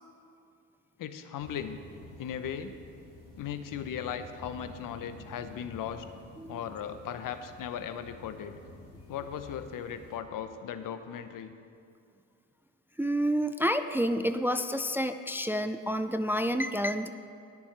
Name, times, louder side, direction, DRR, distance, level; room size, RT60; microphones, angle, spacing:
voice 1, 1.0-1.8 2.2-2.7 3.4-6.1 6.5-8.5 9.1-11.5, left 8 dB, 65° left, 10 dB, 0.7 m, -37 dB
sound 1, 1.4-10.2, left 2 dB, 45° left, 2.3 m, -50 dB
voice 2, 13.0-17.1, equal, 5° right, 9 dB, 0.4 m, -29 dB
19.5 x 7.0 x 3.3 m, 2.4 s
cardioid pair, 80°, 35 cm